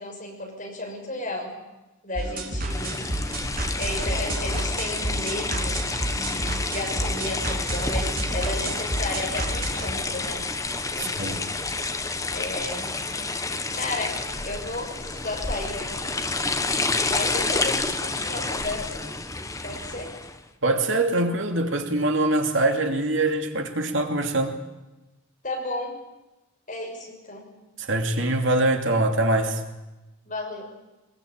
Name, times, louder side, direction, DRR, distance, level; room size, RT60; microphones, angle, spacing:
voice 1, 0.0-1.5 2.0-3.1 3.8-10.4 10.9-11.5 12.3-12.9 13.7-16.2 17.1-19.0 19.6-20.1 25.4-26.0 26.7-27.5 30.3-30.6, left 2 dB, 40° left, 0 dB, 6.9 m, -33 dB
sound 1, 2.2-9.9, right 1 dB, 45° right, 3.4 m, -30 dB
sound 2, 2.7-20.4, left 3 dB, 15° left, 1.2 m, -29 dB
voice 2, 11.0-11.5 20.6-24.6 27.8-29.6, right 2 dB, 65° right, 4 dB, 2.7 m, -23 dB
23.0 x 21.5 x 8.9 m, 1.0 s
head